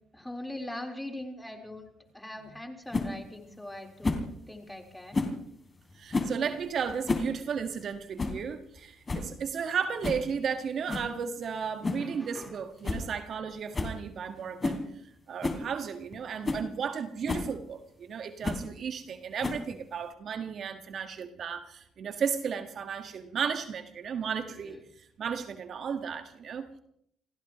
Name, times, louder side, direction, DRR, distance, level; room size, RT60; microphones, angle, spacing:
voice 1, 0.1-5.2 12.0-12.6 16.4-16.5 24.5-24.8, left 1 dB, 10° left, 3 dB, 4.0 m, -42 dB
sound 1, 2.9-3.1 4.0-4.3 5.1-5.4 6.1-6.4 6.9-7.3 7.6-7.7 8.2-8.4 8.8-8.9 9.1-9.3 10.0-10.3 10.9-11.1 11.8-12.1 12.4-12.5 12.8-13.1 13.3-13.4 13.7-14.0 14.6-14.8 15.4-15.6 16.1-16.2 16.4-16.7 17.3-17.5 18.4-18.7 19.4-19.8, left 3 dB, 30° left, 3.3 m, -30 dB
voice 2, 6.0-14.8 15.3-24.8 25.2-26.8, right 6 dB, 60° right, 7 dB, 1.6 m, -34 dB
29.5 x 15.5 x 3.1 m, 0.69 s
supercardioid pair, 65°, 0 cm